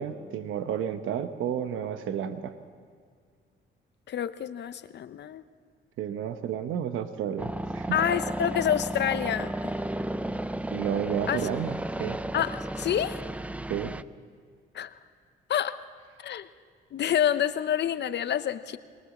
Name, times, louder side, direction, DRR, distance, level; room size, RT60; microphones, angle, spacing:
voice 1, 0.0-2.5 6.0-7.9 10.7-12.2 13.7-13.9, right 9 dB, 80° right, 10 dB, 1.0 m, -31 dB
voice 2, 4.1-5.4 7.9-9.7 11.3-11.5 12.3-13.2 14.7-14.9 15.5-15.8 16.2-16.5 16.9-18.8, left 9 dB, 60° left, 12 dB, 0.9 m, -28 dB
sound 1, 7.4-14.0, right 1 dB, 5° right, 0.5 m, -33 dB
22.5 x 20.0 x 7.2 m, 2.1 s
cardioid pair, 90°, 20 cm